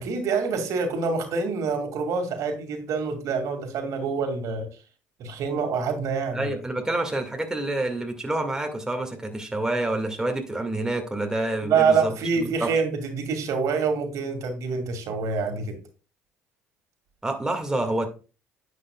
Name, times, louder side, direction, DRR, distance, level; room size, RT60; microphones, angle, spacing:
voice 1, 0.0-4.7 5.2-6.5 11.6-15.8, right 5 dB, 60° right, 6 dB, 2.2 m, -26 dB
voice 2, 6.3-12.1 12.6-12.7 17.2-18.1, right 2 dB, 10° right, 4 dB, 1.9 m, -27 dB
11.0 x 8.4 x 2.3 m, 0.33 s
hypercardioid pair, 60°, 6 cm